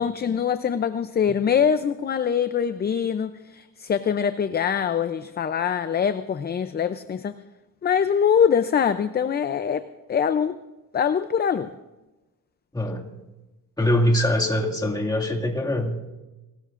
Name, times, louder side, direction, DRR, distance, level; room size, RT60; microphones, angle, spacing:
voice 1, 0.0-7.4 7.8-9.8 10.1-10.5 10.9-11.7, left 7 dB, 30° left, 11 dB, 0.5 m, -23 dB
voice 2, 12.7-13.1 13.8-16.1, left 1 dB, 10° left, -1 dB, 2.1 m, -23 dB
25.5 x 18.5 x 2.5 m, 1.1 s
cardioid pair, 125°, 34 cm